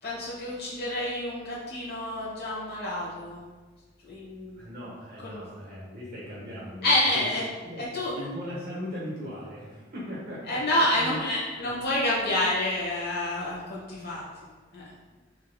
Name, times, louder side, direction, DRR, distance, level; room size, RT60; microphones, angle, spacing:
voice 1, 0.0-3.4 4.0-4.6 5.2-5.4 6.8-7.4 7.8-8.1 10.5-14.8, left 1 dB, 55° left, -6 dB, 1.1 m, -28 dB
voice 2, 4.6-7.4 7.6-7.8 8.1-10.6 10.9-11.2 11.6-11.7, equal, 50° right, -6 dB, 1.1 m, -38 dB
3.7 x 3.0 x 2.2 m, 1.4 s
head